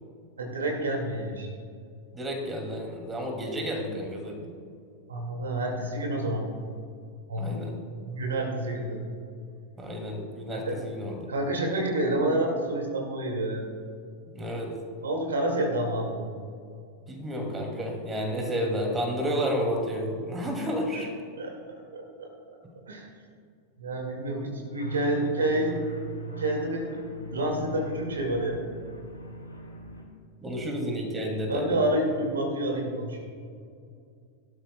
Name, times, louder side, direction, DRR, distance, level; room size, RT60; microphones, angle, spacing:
voice 1, 0.4-1.5 5.1-6.5 7.3-7.6 8.1-9.0 10.5-10.8 11.3-13.7 15.0-16.3 21.4-22.3 22.9-23.1 23.8-25.8 26.3-27.0 27.3-28.6 31.5-33.3, right 1 dB, 70° right, 1 dB, 2.0 m, -29 dB
voice 2, 2.1-4.4 7.4-7.7 9.8-11.2 14.3-14.7 17.1-21.1 30.4-31.8, equal, 15° right, 1 dB, 2.4 m, -31 dB
sound 1, 24.7-30.0, right 2 dB, 85° left, 2.6 m, -40 dB
17.0 x 12.5 x 2.2 m, 2.3 s
figure-of-eight pair, 90°, 0 cm